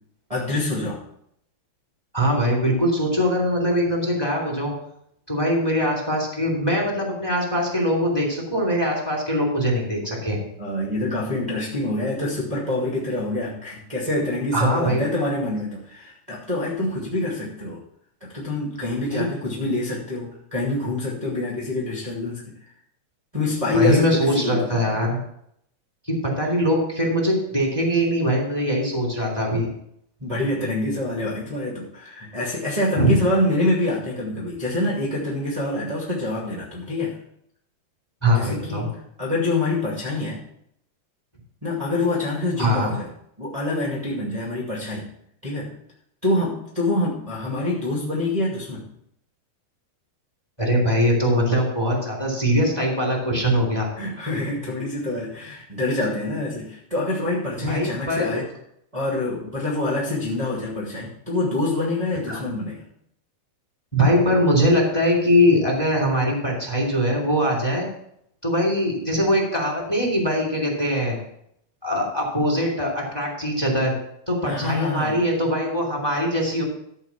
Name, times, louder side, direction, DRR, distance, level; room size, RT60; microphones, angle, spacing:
voice 1, 0.3-1.0 10.6-17.8 18.2-22.5 23.3-24.7 30.2-37.2 38.3-40.4 41.6-43.1 43.4-45.1 45.4-45.8 46.2-48.8 54.0-58.5 58.9-62.8 74.4-75.2, left 2 dB, 15° right, -3 dB, 1.3 m, -26 dB
voice 2, 2.1-4.7 5.3-10.4 14.5-15.0 19.1-19.3 23.7-25.2 26.1-29.7 33.0-33.2 38.2-38.9 42.6-42.9 50.6-53.9 57.6-58.4 62.3-62.4 63.9-67.8 68.4-71.2 71.8-73.9 74.3-76.6, equal, 5° left, 0 dB, 2.4 m, -22 dB
13.5 x 4.6 x 7.2 m, 0.73 s
omnidirectional pair, 4.4 m